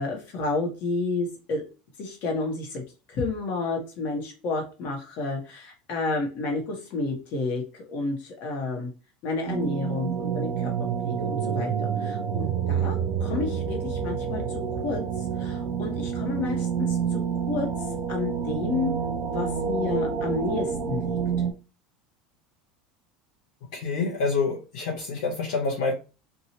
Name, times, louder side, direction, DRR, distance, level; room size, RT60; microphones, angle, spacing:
voice 1, 0.0-1.6 2.0-2.8 3.1-7.6 7.9-8.9 9.2-10.7 11.0-14.4 14.8-15.0 15.4-17.2 17.5-17.7 18.1-18.9 19.2-21.2, left 3 dB, 55° left, 1 dB, 1.3 m, -30 dB
sound 1, 9.5-21.5, right 7 dB, 55° right, 0.6 m, -28 dB
voice 2, 23.7-25.9, left 4 dB, 75° left, -4 dB, 1.0 m, -27 dB
2.8 x 2.6 x 2.9 m, 0.31 s
hypercardioid pair, 85°, 4 cm